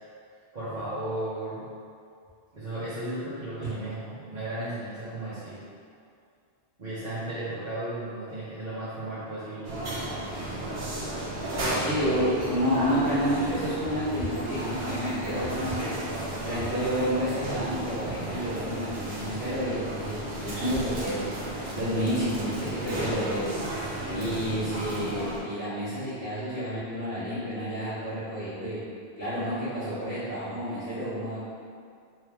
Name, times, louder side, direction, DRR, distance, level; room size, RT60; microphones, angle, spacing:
voice 1, 0.5-1.7 2.5-5.6 6.8-9.8 10.3-10.9 11.5-12.2 18.0-18.3, right 1 dB, 45° right, -13 dB, 0.9 m, -35 dB
sound 1, 9.6-25.4, right 1 dB, 70° right, 1.0 m, -33 dB
voice 2, 11.8-16.0 16.4-21.2 21.7-23.5 24.1-28.8 29.2-31.4, equal, 75° left, -17 dB, 1.6 m, -30 dB
3.4 x 3.1 x 3.4 m, 2.3 s
omnidirectional pair, 1.1 m